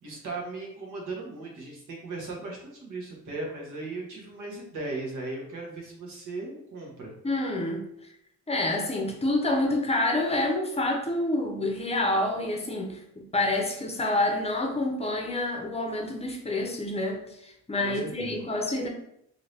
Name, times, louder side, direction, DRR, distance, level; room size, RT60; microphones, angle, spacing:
voice 1, 0.0-7.1 17.8-18.4, right 3 dB, 90° right, -2 dB, 1.1 m, -37 dB
voice 2, 7.2-7.8 8.5-18.9, left 2 dB, 20° left, 2 dB, 0.6 m, -28 dB
2.7 x 2.6 x 3.2 m, 0.75 s
cardioid pair, 110°, 30 cm